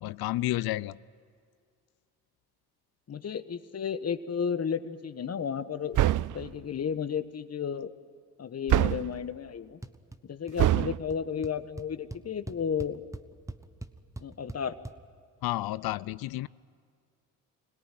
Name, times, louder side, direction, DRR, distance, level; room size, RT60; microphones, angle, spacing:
voice 1, 0.0-1.0 15.4-16.5, left 16 dB, 65° left, 20 dB, 0.6 m, -31 dB
voice 2, 3.1-6.1 6.3-7.9 8.4-9.8 10.2-13.0 14.2-14.8, left 7 dB, 40° left, 12 dB, 1.3 m, -33 dB
sound 1, 5.9-6.5 8.7-9.2 10.6-11.0, right 14 dB, 50° right, 0.5 m, -24 dB
sound 2, 9.8-10.2 10.5-10.9 11.1-11.2 11.4-14.9, right 2 dB, 10° right, 1.0 m, -41 dB
25.5 x 17.5 x 9.3 m, 2.2 s
supercardioid pair, 75°, 40 cm